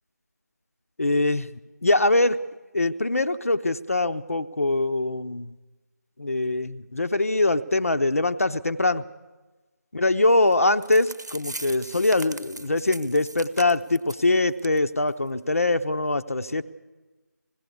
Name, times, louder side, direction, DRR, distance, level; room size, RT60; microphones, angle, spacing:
voice 1, 1.0-1.5 1.8-2.4 2.7-5.5 6.2-9.0 9.9-16.6, left 2 dB, 55° left, 9 dB, 0.7 m, -23 dB
sound 1, 10.5-10.6 10.8-14.2 14.6-14.8 15.1-15.2 15.7-15.8, right 2 dB, 75° right, 1.1 m, -39 dB
20.0 x 16.0 x 8.2 m, 1.2 s
figure-of-eight pair, 170°, 10 cm